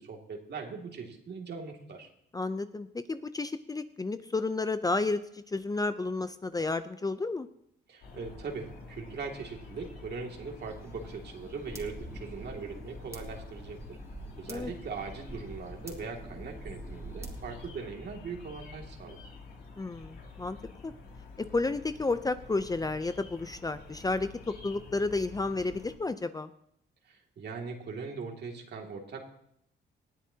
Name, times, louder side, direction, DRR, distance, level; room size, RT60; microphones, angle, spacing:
voice 1, 0.0-2.1 7.9-14.0 14.4-19.2 27.0-29.2, right 5 dB, 55° right, 2 dB, 2.5 m, -40 dB
voice 2, 2.3-7.5 14.5-14.7 19.8-20.6 20.8-20.9 21.5-26.5, left 3 dB, 20° left, 11 dB, 0.6 m, -31 dB
sound 1, 8.0-26.0, left 3 dB, 80° left, 3.2 m, -49 dB
sound 2, 10.6-17.7, right 1 dB, 15° right, 2.8 m, -46 dB
20.0 x 13.0 x 2.9 m, 0.75 s
cardioid pair, 90°, 20 cm